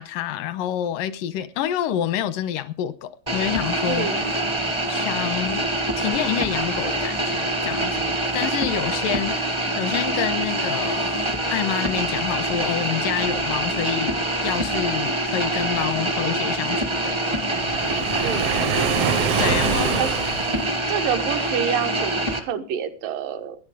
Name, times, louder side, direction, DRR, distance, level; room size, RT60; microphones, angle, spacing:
voice 1, 0.0-4.4 4.9-5.6 6.0-9.4 9.8-17.5 19.4-20.1, left 10 dB, 85° left, 2.6 m, -28 dB
sound 1, 3.3-22.4, right 1 dB, 25° right, 0.5 m, -25 dB
voice 2, 3.9-4.3 18.2-18.6 20.0-20.1 20.9-23.6, right 8 dB, 80° right, 3.0 m, -27 dB
Waves surf, 17.5-21.0, right 7 dB, 65° right, 1.6 m, -25 dB
16.5 x 11.0 x 4.9 m
omnidirectional pair, 3.9 m